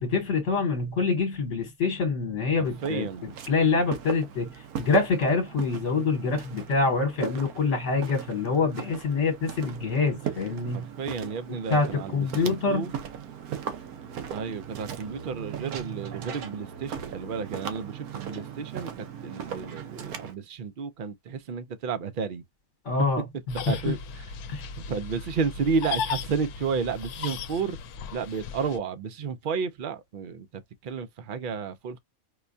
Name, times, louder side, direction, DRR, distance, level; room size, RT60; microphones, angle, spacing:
voice 1, 0.0-3.1 3.5-4.5 4.8-10.8 11.7-12.9 22.8-23.8 24.5-24.7, left 4 dB, 55° left, 1.4 m, -26 dB
voice 2, 2.6-3.3 10.7-12.9 14.3-22.4 23.7-24.4 24.9-27.8 28.1-30.5 30.8-32.0, right 5 dB, 60° right, 0.5 m, -32 dB
Walk footsteps, 2.6-20.3, right 8 dB, 80° right, 1.2 m, -38 dB
sound 1, 23.5-28.8, left 6 dB, 85° left, 1.1 m, -36 dB
4.8 x 2.2 x 2.6 m
omnidirectional pair, 1.5 m